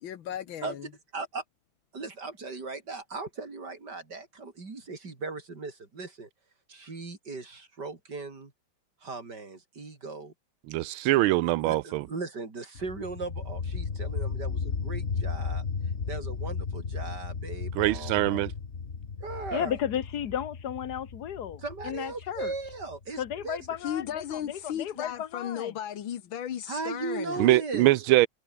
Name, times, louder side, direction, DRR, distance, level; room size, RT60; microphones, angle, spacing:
voice 1, 0.0-0.9 23.8-27.4, left 10 dB, 70° left, 2.1 m, -35 dB
voice 2, 1.1-1.4 1.9-6.3 6.7-8.5 9.0-10.3 11.6-15.6 16.1-18.4 19.2-19.8 21.6-23.6 26.7-27.9, right 3 dB, 50° right, 4.7 m, -38 dB
voice 3, 10.7-12.1 17.7-18.5 27.4-28.3, right 17 dB, 80° right, 1.4 m, -23 dB
sound 1, 12.8-24.3, left 5 dB, 35° left, 1.7 m, -35 dB
voice 4, 19.5-22.5 23.2-25.7, left 9 dB, 55° left, 1.6 m, -34 dB
omnidirectional pair, 2.3 m